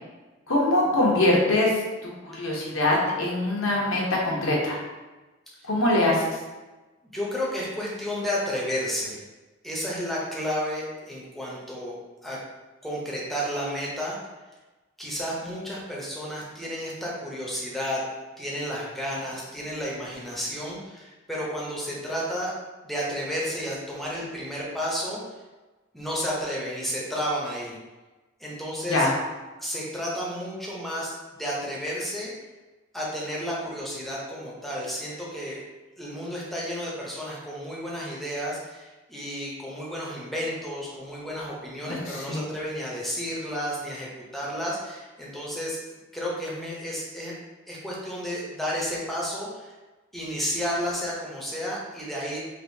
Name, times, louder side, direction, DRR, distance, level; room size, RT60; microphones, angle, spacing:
voice 1, 0.5-1.7 2.0-4.8 5.7-6.4 28.9-29.1 41.9-42.4, left 1 dB, 90° left, -3 dB, 0.9 m, -23 dB
voice 2, 7.1-9.2 9.6-12.0 12.2-12.4 12.8-14.2 15.0-18.0 18.4-22.5 22.8-25.2 25.9-27.8 28.4-29.1 29.6-32.3 32.9-35.6 36.0-45.8 46.1-47.3 47.7-49.7 50.1-52.4, equal, ahead, -5 dB, 0.6 m, -32 dB
3.4 x 2.6 x 2.6 m, 1.2 s
head